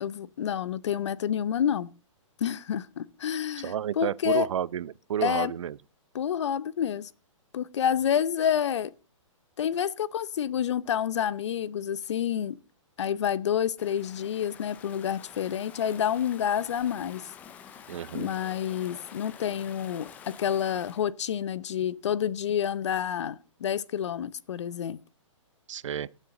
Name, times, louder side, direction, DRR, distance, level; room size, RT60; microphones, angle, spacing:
voice 1, 0.0-1.9 2.4-4.5 5.2-5.5 6.1-7.1 7.5-8.9 9.6-12.6 13.0-17.3 18.1-25.0, left 9 dB, 60° left, 0.7 m, -29 dB
voice 2, 3.6-5.8 17.9-18.3 25.7-26.1, right 9 dB, 65° right, 0.5 m, -31 dB
Stream / Ocean, 13.8-21.0, left 8 dB, 10° left, 0.5 m, -48 dB
17.5 x 7.5 x 3.9 m
hypercardioid pair, 165°, 17 cm